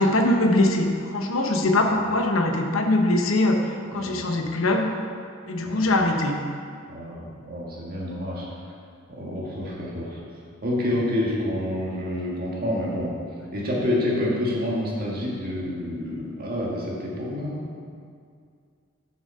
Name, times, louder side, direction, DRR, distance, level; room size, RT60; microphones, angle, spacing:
voice 1, 0.0-3.6 3.9-4.9 5.5-6.4, left 2 dB, 75° left, 3 dB, 0.9 m, -22 dB
voice 2, 3.9-4.4 5.6-5.9 6.9-8.6 9.1-10.2 10.6-13.2 13.5-17.6, left 1 dB, 45° right, -4 dB, 1.8 m, -28 dB
7.2 x 6.0 x 5.4 m, 2.2 s
head